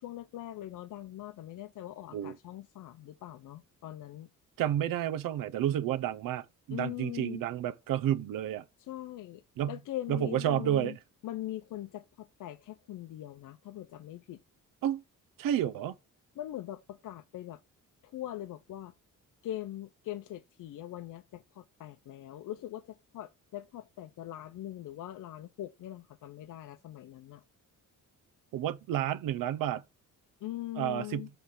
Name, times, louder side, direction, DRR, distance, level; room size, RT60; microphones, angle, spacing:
voice 1, 0.0-4.3 6.7-7.4 8.9-11.0 11.2-14.4 16.4-17.6 18.0-18.9 19.4-27.4 30.4-31.3, left 13 dB, 70° left, 0.6 m, -41 dB
voice 2, 4.6-8.6 9.6-9.8 10.1-11.0 14.8-15.0 15.4-16.0 28.5-29.8 30.8-31.3, right 11 dB, 80° right, 0.7 m, -30 dB
5.8 x 3.3 x 5.3 m
cardioid pair, 130°, 33 cm